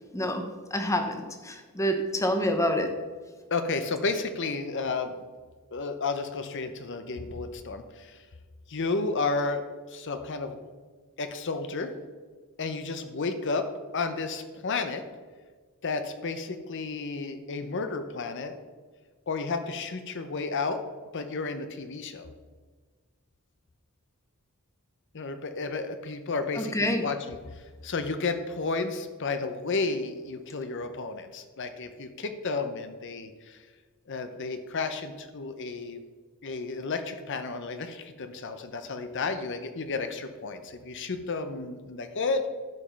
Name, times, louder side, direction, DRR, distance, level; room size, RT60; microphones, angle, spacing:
voice 1, 0.1-3.0 26.5-27.0, equal, 15° left, 6 dB, 0.9 m, -27 dB
voice 2, 3.5-5.2 5.7-8.2 8.7-9.6 9.9-10.6 11.2-11.9 12.6-13.7 13.9-15.0 15.8-18.6 19.3-20.8 21.1-22.3 25.1-33.6 34.1-36.0 36.4-42.5, left 4 dB, 55° left, 8 dB, 0.7 m, -32 dB
11.0 x 5.2 x 5.8 m, 1.5 s
head